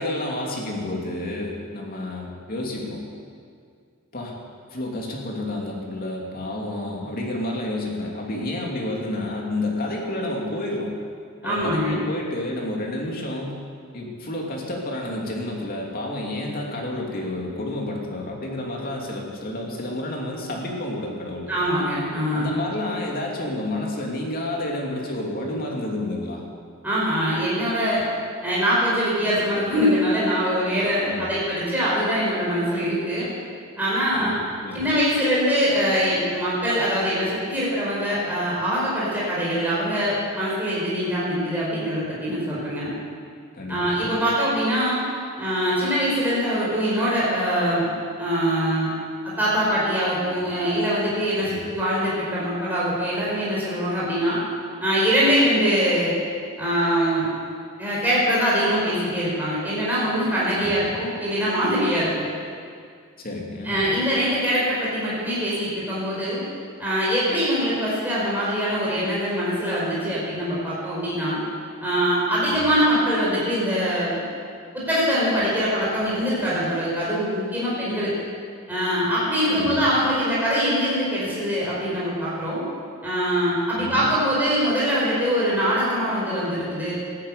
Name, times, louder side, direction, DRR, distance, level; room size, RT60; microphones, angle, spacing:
voice 1, 0.0-3.0 4.1-4.3 4.7-10.9 11.4-13.6 13.9-21.5 22.3-26.4 31.0-31.3 34.1-34.3 34.6-34.8 43.5-43.8 51.4-51.6 60.5-60.9 63.2-63.7 72.5-72.7 79.5-79.8 83.7-84.1, left 1 dB, 45° left, -1 dB, 2.8 m, -30 dB
voice 2, 11.4-11.9 21.5-22.5 26.8-28.0 28.4-33.3 33.8-34.3 34.7-42.9 43.7-45.0 45.4-47.9 48.2-48.9 49.2-54.4 54.8-56.1 56.6-57.3 57.8-62.2 63.6-66.4 66.8-71.4 71.8-74.2 74.7-78.1 78.7-82.6 83.0-87.0, equal, 10° right, -8 dB, 4.9 m, -23 dB
14.5 x 11.5 x 8.4 m, 2.2 s
head